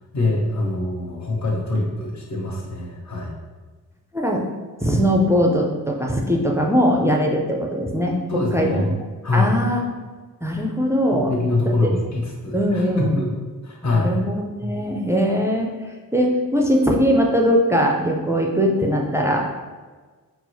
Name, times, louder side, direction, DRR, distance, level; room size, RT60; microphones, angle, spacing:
voice 1, 0.1-3.3 8.3-8.9 9.2-9.5 11.1-13.3 13.6-14.1, left 2 dB, 45° left, -2 dB, 0.9 m, -24 dB
voice 2, 4.8-8.2 8.5-8.9 9.3-9.8 10.4-11.3 11.6-11.9 12.5-13.0 13.8-15.7 16.1-19.6, equal, 5° right, 0 dB, 0.4 m, -20 dB
4.4 x 2.0 x 2.7 m, 1.4 s
cardioid pair, 60°, 38 cm